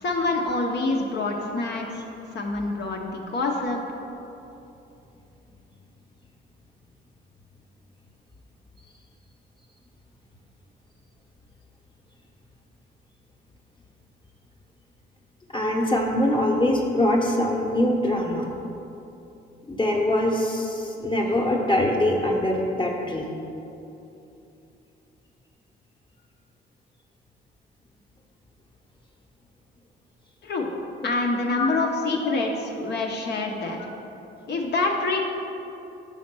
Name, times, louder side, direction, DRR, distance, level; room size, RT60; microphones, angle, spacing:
voice 1, 0.0-2.0 2.3-3.8 30.4-30.7 31.0-33.8 34.5-35.2, left 3 dB, 55° left, 0 dB, 0.8 m, -26 dB
voice 2, 15.5-18.5 19.7-23.3 31.5-31.7 32.2-32.3 33.8-33.9, left 1 dB, 25° left, -1 dB, 1.0 m, -23 dB
5.7 x 4.2 x 6.0 m, 2.8 s
cardioid pair, 90°, 20 cm